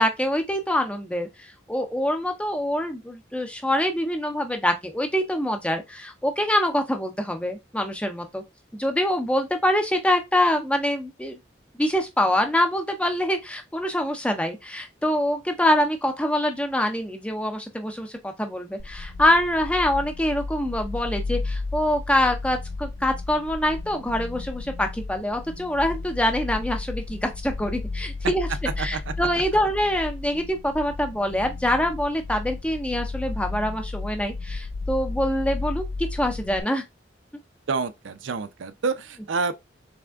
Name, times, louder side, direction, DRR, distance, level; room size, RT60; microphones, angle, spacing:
voice 1, 0.0-8.4 8.7-11.4 11.8-28.5 28.8-35.8 36.1-36.8, left 1 dB, 5° left, 0.6 m, -25 dB
sound 1, 18.8-36.6, left 3 dB, 45° left, 0.3 m, -33 dB
voice 2, 28.8-29.1 37.7-39.5, right 4 dB, 85° right, 0.5 m, -28 dB
3.6 x 3.3 x 3.5 m
head